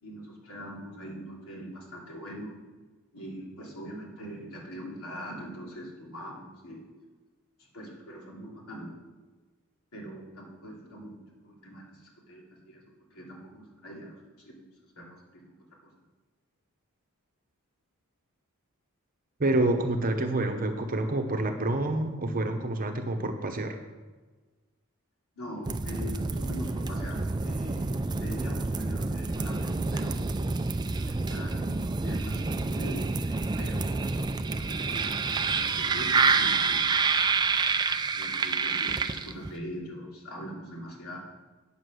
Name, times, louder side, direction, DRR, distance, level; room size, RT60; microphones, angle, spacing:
voice 1, 0.0-2.6 3.1-6.9 7.7-8.9 9.9-12.8 13.1-14.7 15.0-15.5 15.8-15.9 25.3-30.5 31.0-34.2 34.4-36.9 38.1-41.2, equal, 75° left, -2 dB, 3.0 m, -42 dB
voice 2, 19.4-23.8, right 2 dB, 40° right, 5 dB, 1.0 m, -28 dB
sound 1, 25.7-39.6, right 4 dB, 20° right, 0.4 m, -28 dB
8.8 x 7.3 x 6.3 m, 1.3 s
head